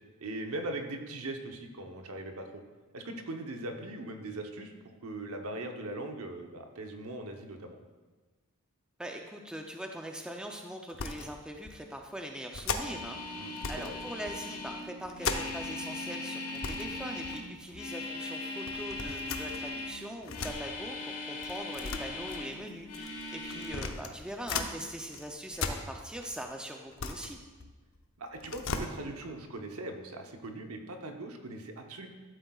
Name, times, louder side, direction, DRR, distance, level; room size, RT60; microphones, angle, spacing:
voice 1, 0.2-2.5 2.9-7.8 13.3-13.5 13.8-14.0 23.5-23.9 28.2-32.1, right 2 dB, 75° right, 4 dB, 0.9 m, -40 dB
voice 2, 9.0-13.2 13.7-27.4, equal, 5° right, 2 dB, 0.5 m, -42 dB
sound 1, 10.9-11.3 11.7-11.8 12.5-13.1 13.6-14.0 14.3-15.8 16.1-16.2 16.5-16.9 17.2-17.9 18.7-20.6 21.4-24.7 25.1-26.4 26.7-28.0 28.3-28.9, left 4 dB, 60° left, 0.6 m, -37 dB
sound 2, 12.7-20.0 20.2-22.5 22.8-23.8, left 2 dB, 80° left, 1.4 m, -39 dB
12.5 x 7.8 x 2.4 m, 1.3 s
head